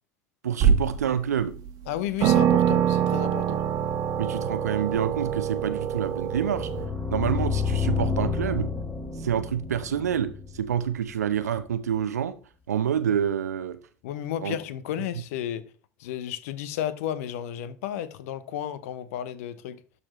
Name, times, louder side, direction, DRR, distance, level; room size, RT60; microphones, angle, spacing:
voice 1, 0.4-1.5 2.2-2.3 4.2-6.7 7.1-8.7 9.2-12.4 12.7-13.8 14.4-14.5, right 9 dB, 75° right, 0.7 m, -27 dB
sound 1, 0.6-1.1 1.7-1.8 2.2-6.9, right 8 dB, 45° right, 1.2 m, -24 dB
voice 2, 1.9-3.6 14.0-15.6 16.0-19.8, left 11 dB, 65° left, 0.7 m, -32 dB
sound 2, 6.3-11.2, left 5 dB, 20° left, 1.4 m, -30 dB
12.0 x 4.1 x 3.1 m
figure-of-eight pair, 70°, 9 cm